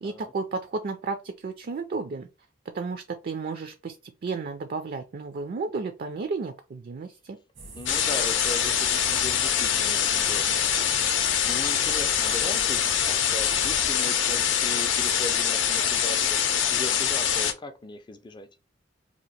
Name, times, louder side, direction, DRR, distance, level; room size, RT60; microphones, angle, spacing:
voice 1, 0.0-2.3 2.7-4.0 4.2-7.4, right 4 dB, 50° right, 0.4 m, -33 dB
sound 1, 7.6-13.9, right 3 dB, 90° right, 1.2 m, -43 dB
voice 2, 7.7-10.6 11.4-18.5, left 1 dB, 25° left, 0.4 m, -38 dB
sound 2, 7.9-17.5, left 8 dB, 75° left, 0.6 m, -24 dB
2.9 x 2.5 x 4.1 m
head